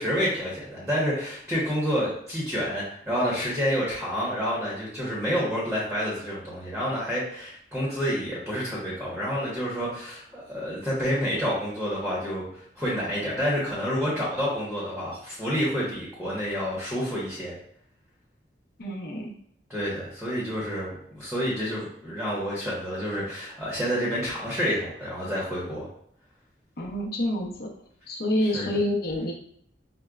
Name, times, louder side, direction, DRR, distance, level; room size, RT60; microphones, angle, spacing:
voice 1, 0.0-12.4 12.8-17.6 19.7-25.9 28.5-28.7, equal, 5° right, -6 dB, 0.9 m, -29 dB
voice 2, 18.8-19.3 26.8-27.7 28.1-29.3, left 1 dB, 60° left, -1 dB, 0.7 m, -27 dB
4.9 x 2.1 x 2.3 m, 0.67 s
head